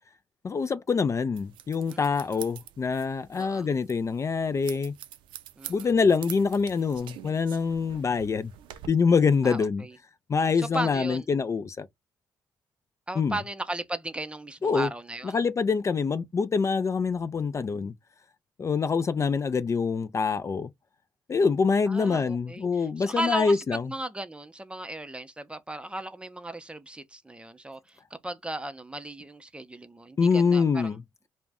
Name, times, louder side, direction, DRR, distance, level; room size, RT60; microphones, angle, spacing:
voice 1, 0.4-4.9 5.7-8.5 8.9-9.8 10.3-11.9 13.2-13.4 14.6-14.9 15.3-17.9 18.6-20.7 21.3-23.8 30.2-31.0, left 5 dB, 35° left, 0.4 m, -25 dB
sound 1, 1.4-8.9, right 12 dB, 75° right, 0.4 m, -46 dB
voice 2, 3.4-3.7 5.6-5.9 9.4-9.9 10.6-11.3 13.1-15.4 21.9-30.9, right 1 dB, 15° right, 0.6 m, -36 dB
2.4 x 2.1 x 3.4 m
supercardioid pair, 55°, 8 cm